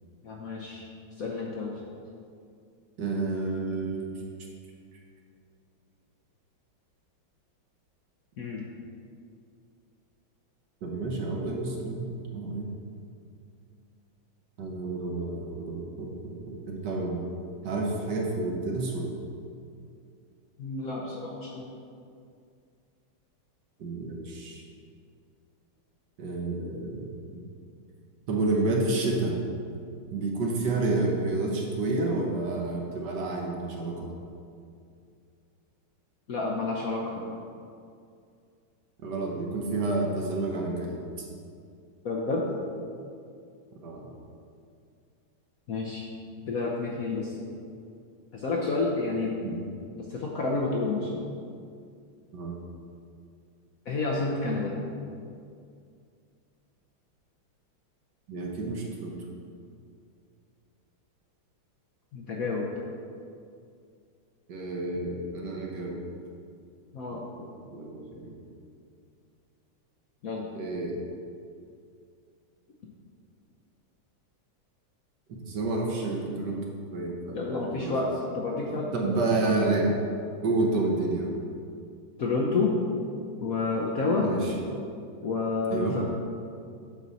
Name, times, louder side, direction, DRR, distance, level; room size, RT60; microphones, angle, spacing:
voice 1, 0.2-0.8 1.2-1.7 8.4-8.6 20.6-21.7 36.3-37.2 42.0-42.5 45.7-46.1 46.5-47.4 48.3-49.3 50.0-51.2 53.9-54.8 62.1-62.7 66.9-67.2 70.2-70.5 77.3-79.3 82.2-82.8 83.4-84.3 85.2-86.0, left 3 dB, 60° left, -2 dB, 0.9 m, -29 dB
voice 2, 3.0-4.1 10.8-12.1 12.3-12.7 14.6-17.2 17.6-19.1 23.8-24.6 26.2-27.4 28.3-29.4 30.1-34.1 39.0-41.3 43.8-44.1 49.4-49.6 52.3-52.6 58.3-59.2 64.5-66.0 67.7-68.4 70.5-71.0 75.3-76.6 76.9-77.9 78.9-80.0 80.4-81.3 84.2-84.5 85.7-86.0, right 2 dB, 60° right, -1 dB, 1.4 m, -30 dB
8.4 x 6.0 x 4.0 m, 2.4 s
omnidirectional pair, 2.2 m